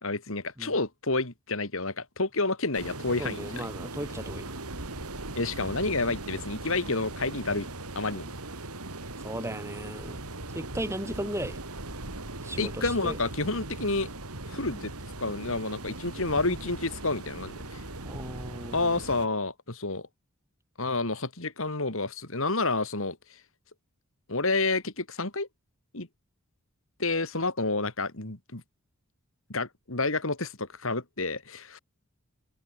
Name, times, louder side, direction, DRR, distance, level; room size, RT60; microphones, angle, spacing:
voice 1, 0.0-3.7 5.3-7.7 7.9-8.3 12.6-14.1 14.5-14.9 15.2-17.8 18.7-20.1 20.8-23.4 24.3-25.5 25.9-26.1 27.0-28.6 29.5-31.8, left 3 dB, 65° left, 3.1 m, -29 dB
sound 1, 2.7-19.3, right 2 dB, 90° right, 3.9 m, -39 dB
voice 2, 3.2-4.5 9.2-10.2 10.5-11.6 12.4-13.2 18.0-19.0, right 1 dB, 10° right, 6.8 m, -36 dB
head